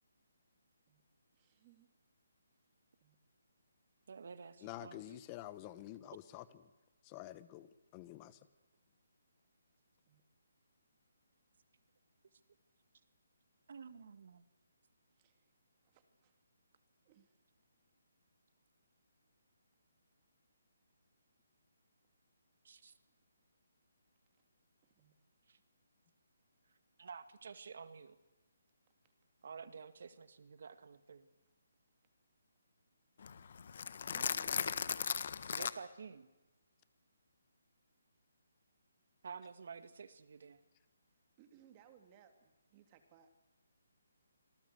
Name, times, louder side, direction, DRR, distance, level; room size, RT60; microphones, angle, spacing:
voice 1, 1.3-1.9 3.0-3.2 10.1-10.2 15.1-15.5 15.8-16.4 17.0-17.5 23.1-23.3 24.8-25.1 34.1-34.9 41.4-43.3, right 9 dB, 20° right, 2.5 m, -65 dB
voice 2, 4.1-5.0 13.7-14.4 22.6-22.9 25.5-25.6 27.0-28.2 29.4-31.3 35.5-36.3 39.2-40.6, right 5 dB, 55° right, 1.9 m, -51 dB
voice 3, 4.6-6.7 7.0-8.5, left 14 dB, 20° left, 1.0 m, -49 dB
voice 4, 33.2-35.7, left 7 dB, 50° left, 1.5 m, -38 dB
26.0 x 19.0 x 7.9 m
hypercardioid pair, 170°, 0 cm